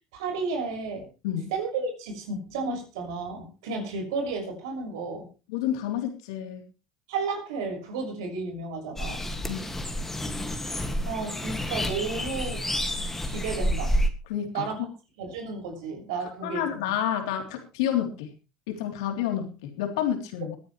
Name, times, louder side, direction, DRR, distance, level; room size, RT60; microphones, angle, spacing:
voice 1, 0.1-1.1 1.5-5.3 7.1-9.2 10.9-12.6 13.2-14.0 14.5-14.8 15.2-16.9, right 4 dB, 85° right, 2 dB, 6.2 m, -32 dB
voice 2, 5.5-6.7 9.5-9.6 14.3-14.7 16.4-18.3 18.7-20.6, left 10 dB, 85° left, 4 dB, 3.3 m, -29 dB
sound 1, 9.0-14.1, equal, 10° left, 2.1 m, -29 dB
24.0 x 9.5 x 3.2 m, 0.32 s
supercardioid pair, 105°, 3 cm